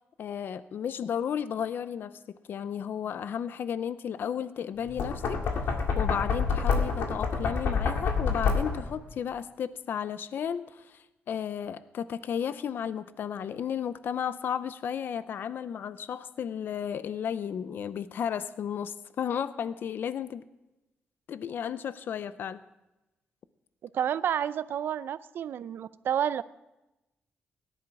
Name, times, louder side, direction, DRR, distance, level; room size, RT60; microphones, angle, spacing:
voice 1, 0.2-2.1 2.5-20.4 21.3-22.6, left 8 dB, 60° left, 14 dB, 0.6 m, -33 dB
Knock, 4.8-9.0, left 5 dB, 90° left, 2.0 m, -28 dB
voice 2, 23.9-26.4, right 9 dB, 65° right, 16 dB, 0.5 m, -30 dB
17.5 x 11.0 x 4.8 m, 0.98 s
wide cardioid pair, 140°, 4 cm